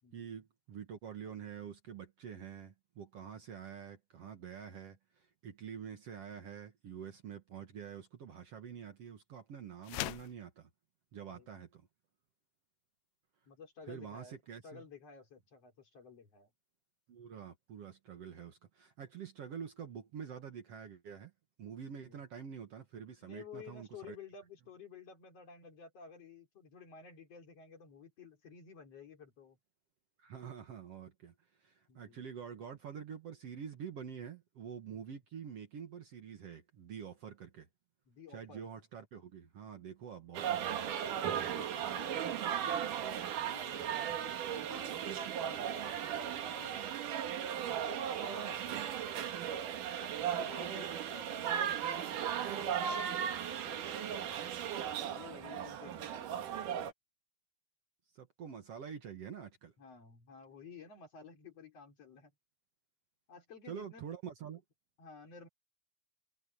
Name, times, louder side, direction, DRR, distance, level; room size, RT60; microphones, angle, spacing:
voice 1, 0.1-10.7 11.1-11.9 13.9-14.8 17.1-21.3 21.6-24.2 30.2-37.7 38.3-41.1 55.9-56.0 58.1-59.7 63.7-64.6, right 7 dB, 55° right, 2.2 m, -47 dB
sound 1, 9.8-10.4, left 18 dB, 85° left, 1.6 m, -39 dB
voice 2, 13.5-14.4 14.6-16.5 21.9-22.2 23.2-29.6 31.9-32.2 34.9-35.2 38.1-38.6 41.1-43.0 43.4-47.1 47.5-49.0 50.0-54.5 55.0-56.6 59.8-62.3 63.3-64.0 65.0-65.5, left 5 dB, 50° left, 4.3 m, -53 dB
sound 2, 40.3-56.9, right 9 dB, 75° right, 3.1 m, -37 dB
omnidirectional pair, 3.7 m